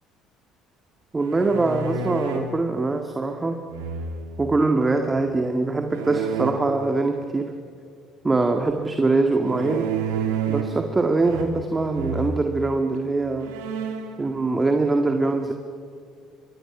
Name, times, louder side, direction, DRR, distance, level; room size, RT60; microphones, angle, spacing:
voice 1, 1.1-3.6 4.4-7.5 8.2-9.9 10.5-13.5 14.2-15.5, right 3 dB, 25° right, 5 dB, 1.9 m, -23 dB
sound 1, 1.2-2.5 3.7-4.4 5.9-6.5 9.4-10.8 11.2-11.7 11.9-12.3 13.0-13.1 13.4-14.1, right 7 dB, 75° right, 2.8 m, -29 dB
26.5 x 24.5 x 6.1 m, 2.3 s
hypercardioid pair, 60°, 0 cm